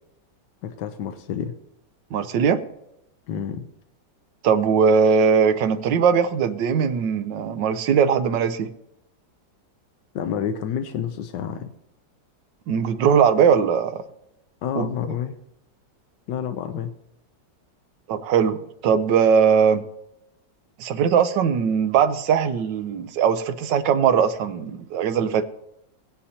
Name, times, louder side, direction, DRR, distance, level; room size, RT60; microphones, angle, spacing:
voice 1, 0.6-1.5 3.3-3.6 10.1-11.7 14.6-15.4 16.3-16.9, left 8 dB, 75° left, 6 dB, 1.3 m, -29 dB
voice 2, 2.1-2.6 4.4-8.7 12.7-14.0 14.8-14.9 18.1-19.8 20.8-25.4, right 7 dB, 80° right, 10 dB, 1.5 m, -20 dB
17.5 x 9.7 x 2.8 m, 0.81 s
omnidirectional pair, 1.9 m